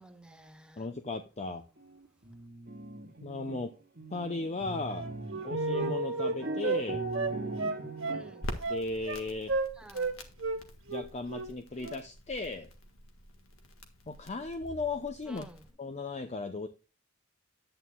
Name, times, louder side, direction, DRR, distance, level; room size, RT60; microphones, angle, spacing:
voice 1, 0.0-0.9 5.3-5.6 8.1-8.5 9.8-10.2 15.3-15.7, right 1 dB, 5° right, 1.0 m, -53 dB
voice 2, 0.8-1.6 3.2-3.7 4.1-5.1 5.4-7.0 8.7-9.5 10.9-12.7 14.1-15.5 15.8-16.7, left 3 dB, 35° left, 0.7 m, -36 dB
sound 1, 1.8-3.6 4.0-8.5, right 2 dB, 50° right, 1.8 m, -37 dB
Wind instrument woodwind instrument, 4.9-6.8 7.1-8.2 8.6-9.2 9.5-10.1 10.4-10.6 10.9-11.5 11.8-12.0, right 3 dB, 70° right, 1.8 m, -33 dB
Crackle, 8.4-15.7, left 1 dB, 85° left, 1.7 m, -46 dB
11.0 x 8.9 x 2.3 m
head